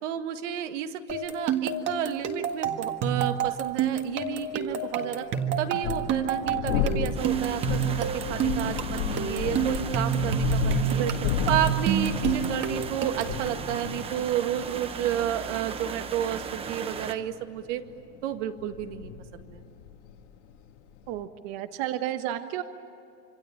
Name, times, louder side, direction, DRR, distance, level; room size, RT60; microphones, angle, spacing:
voice 1, 0.0-5.3 5.6-11.0 11.5-17.8 18.2-19.6, right 10 dB, 85° right, 7 dB, 2.1 m, -31 dB
sound 1, 1.1-13.4, right 8 dB, 30° right, 1.7 m, -29 dB
sound 2, 3.4-3.5 5.6-21.2, left 7 dB, 75° left, 3.0 m, -33 dB
sound 3, 7.1-17.1, right 6 dB, 15° right, 0.9 m, -37 dB
voice 2, 10.9-11.3 21.1-22.6, right 12 dB, 50° right, 8 dB, 1.2 m, -32 dB
26.5 x 25.5 x 8.8 m, 2.5 s
supercardioid pair, 170°, 36 cm